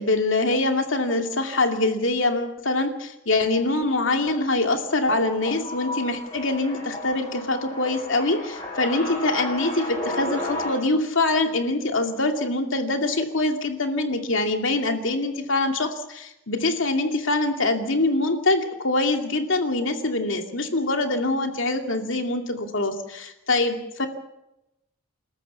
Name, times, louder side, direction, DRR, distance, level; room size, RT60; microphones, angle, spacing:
voice 1, 0.0-24.1, left 2 dB, 65° left, 5 dB, 2.5 m, -24 dB
sound 1, 5.1-10.7, left 1 dB, 20° left, 6.2 m, -33 dB
29.5 x 13.5 x 7.0 m, 0.90 s
head